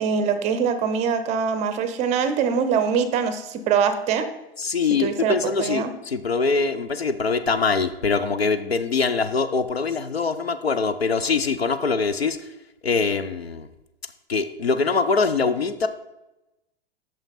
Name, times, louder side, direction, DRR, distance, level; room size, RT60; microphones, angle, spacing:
voice 1, 0.0-4.3 5.0-5.9, right 6 dB, 25° right, 10 dB, 0.5 m, -23 dB
voice 2, 4.6-12.4 12.8-13.7 14.3-15.9, left 4 dB, 90° left, 11 dB, 0.5 m, -23 dB
5.8 x 5.8 x 4.1 m, 0.96 s
figure-of-eight pair, 100°, 30 cm